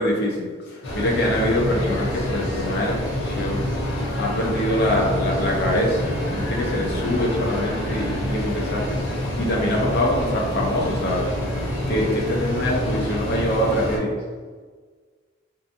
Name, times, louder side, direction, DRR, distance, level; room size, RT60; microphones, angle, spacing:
voice 1, 0.0-3.6 4.2-11.3 11.9-14.2, left 1 dB, 55° left, -3 dB, 0.4 m, -24 dB
sound 1, 0.8-14.0, left 1 dB, 85° left, 0.8 m, -27 dB
2.6 x 2.5 x 2.4 m, 1.5 s
head